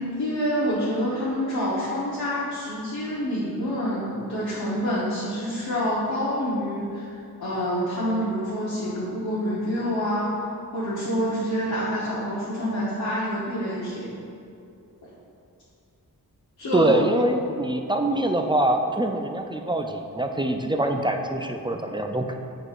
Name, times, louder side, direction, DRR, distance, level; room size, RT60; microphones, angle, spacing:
voice 1, 0.0-14.2 15.0-15.1 16.6-17.0, equal, 85° left, -9 dB, 1.1 m, -27 dB
voice 2, 16.7-22.3, right 1 dB, 15° right, 4 dB, 0.3 m, -24 dB
8.9 x 4.7 x 2.4 m, 2.5 s
wide cardioid pair, 75°, 36 cm